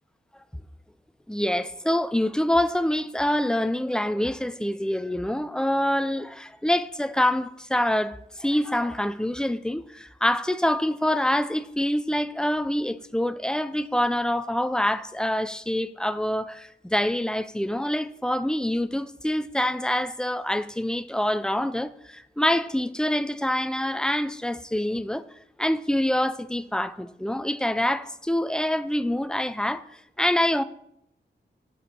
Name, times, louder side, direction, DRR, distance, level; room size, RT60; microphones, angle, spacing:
voice 1, 1.3-25.3 25.6-29.8 30.2-30.6, left 1 dB, 5° left, 0.3 m, -26 dB
7.7 x 5.1 x 4.3 m
wide cardioid pair, 80°, 19 cm